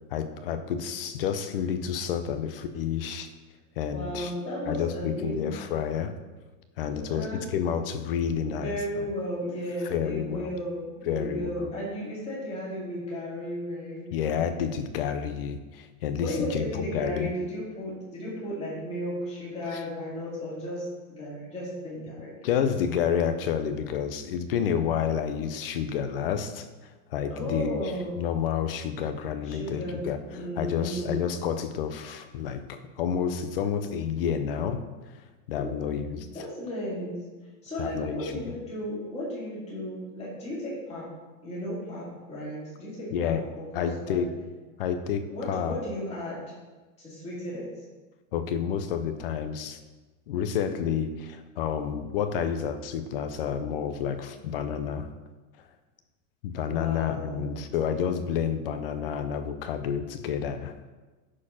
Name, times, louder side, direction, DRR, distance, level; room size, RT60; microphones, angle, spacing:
voice 1, 0.1-3.3 3.8-4.3 4.7-6.1 6.8-8.8 9.9-10.5 11.1-11.7 14.1-17.3 19.7-19.8 22.4-27.9 28.2-34.8 35.1-36.3 37.8-38.3 43.1-43.5 43.7-44.3 44.8-45.8 48.3-49.8 50.3-55.1 56.4-60.8, left 8 dB, 40° left, 9 dB, 0.6 m, -30 dB
voice 2, 3.9-5.5 6.9-7.4 8.4-14.1 16.2-22.3 27.3-28.2 29.4-31.2 35.6-35.8 36.2-37.2 37.6-41.1 41.4-43.4 43.8-44.2 45.3-46.4 47.0-47.7 56.6-57.6, equal, 15° left, -7 dB, 2.3 m, -34 dB
9.7 x 4.5 x 5.6 m, 1.2 s
supercardioid pair, 180°, 45 cm